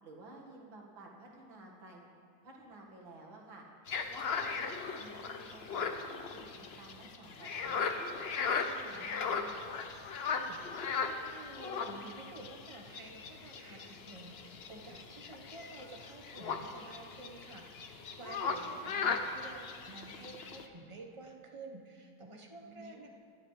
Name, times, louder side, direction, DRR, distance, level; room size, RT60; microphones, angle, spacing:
voice 1, 0.0-2.1 2.4-3.6 4.1-7.9 8.3-9.5 18.4-19.3 22.6-23.0, right 2 dB, 80° right, -1 dB, 2.6 m, -53 dB
sound 1, 3.9-20.7, left 5 dB, 65° left, 0.6 m, -38 dB
voice 2, 10.3-23.1, right 2 dB, 20° right, 2 dB, 0.8 m, -51 dB
25.5 x 11.0 x 3.3 m, 2.3 s
omnidirectional pair, 2.1 m